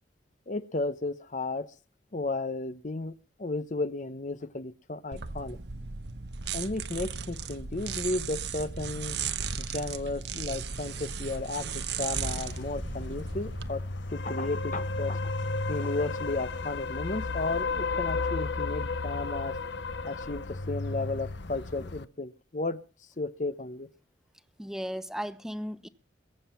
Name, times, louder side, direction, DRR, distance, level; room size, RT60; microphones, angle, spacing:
voice 1, 0.5-1.7 2.1-5.6 6.5-9.2 9.6-13.8 14.1-15.3 15.7-19.6 20.0-22.8 23.2-23.9, left 2 dB, 40° left, 0.8 m, -34 dB
sound 1, 5.1-13.7, right 5 dB, 65° right, 1.0 m, -36 dB
sound 2, 10.7-17.6, left 3 dB, 90° left, 3.3 m, -55 dB
sound 3, 12.4-22.0, left 3 dB, 70° left, 0.9 m, -33 dB
voice 2, 24.6-25.9, equal, 5° right, 0.8 m, -35 dB
22.5 x 7.8 x 5.7 m
head